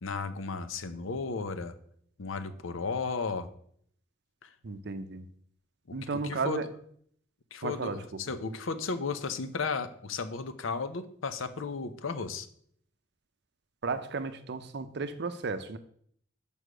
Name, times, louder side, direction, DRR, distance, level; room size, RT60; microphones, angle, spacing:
voice 1, 0.0-1.7 2.2-3.5 4.4-4.5 6.1-6.6 7.5-8.0 8.3-12.5, left 4 dB, 75° left, 11 dB, 0.7 m, -34 dB
voice 2, 4.6-5.3 5.9-6.7 7.6-8.2 13.8-15.8, right 4 dB, 55° right, 11 dB, 0.6 m, -34 dB
6.5 x 5.4 x 5.0 m, 0.64 s
head